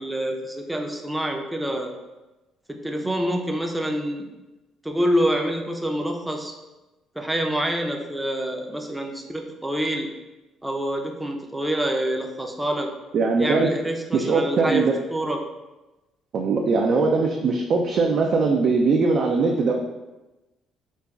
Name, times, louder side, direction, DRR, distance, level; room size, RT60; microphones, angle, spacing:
voice 1, 0.0-1.9 2.7-4.3 4.8-6.5 7.2-10.1 10.6-12.9 13.4-14.8 15.1-15.4, equal, 10° right, 2 dB, 0.5 m, -26 dB
voice 2, 13.1-13.7 14.1-14.9 16.3-19.7, right 4 dB, 60° right, 0 dB, 0.4 m, -21 dB
5.1 x 2.2 x 2.3 m, 1.1 s
supercardioid pair, 65°, 0 cm